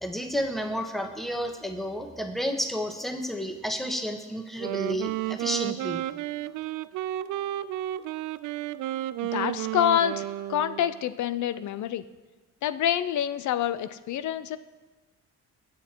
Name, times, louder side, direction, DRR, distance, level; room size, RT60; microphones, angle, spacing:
voice 1, 0.0-6.0, equal, ahead, 4 dB, 1.4 m, -31 dB
Wind instrument woodwind instrument, 4.5-11.0, right 14 dB, 80° right, 0.5 m, -32 dB
voice 2, 9.3-12.0 12.6-14.6, left 10 dB, 70° left, 14 dB, 0.6 m, -27 dB
21.5 x 7.4 x 4.5 m, 1.3 s
cardioid pair, 90°, 30 cm